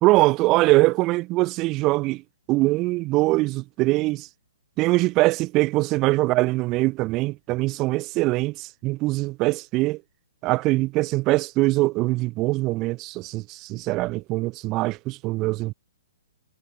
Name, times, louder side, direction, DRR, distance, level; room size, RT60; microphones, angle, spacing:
voice 1, 0.0-2.2 2.5-4.3 4.8-10.0 10.4-15.7, right 20 dB, 30° right, 1.1 m, -22 dB
figure-of-eight pair, 125°, 0 cm